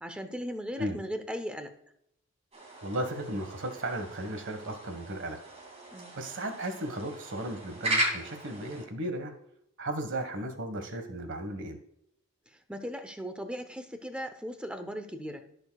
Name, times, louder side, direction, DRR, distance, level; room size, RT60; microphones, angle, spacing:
voice 1, 0.0-1.7 5.9-6.1 12.7-15.4, equal, 5° right, 7 dB, 0.8 m, -37 dB
sound 1, 2.5-8.8, right 1 dB, 30° right, 2.4 m, -36 dB
voice 2, 2.8-5.4 6.2-9.3 9.8-11.8, right 1 dB, 60° right, 7 dB, 1.5 m, -35 dB
15.5 x 6.6 x 2.4 m, 0.75 s
head